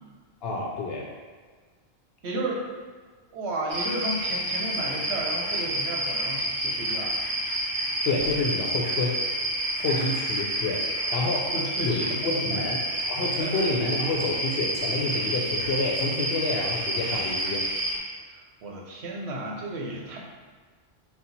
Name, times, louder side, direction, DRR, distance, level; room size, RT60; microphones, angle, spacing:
voice 1, 0.4-1.1 8.0-9.2 9.8-10.8 11.1-11.5 11.8-17.6, left 2 dB, 65° left, -1 dB, 0.8 m, -28 dB
voice 2, 2.2-2.6 3.3-7.1 11.5-12.7 13.2-13.5 18.3-20.2, right 1 dB, 70° right, -1 dB, 1.0 m, -33 dB
sound 1, 3.7-18.0, right 1 dB, 40° right, 0.5 m, -29 dB
4.3 x 2.3 x 3.9 m, 1.5 s
omnidirectional pair, 1.2 m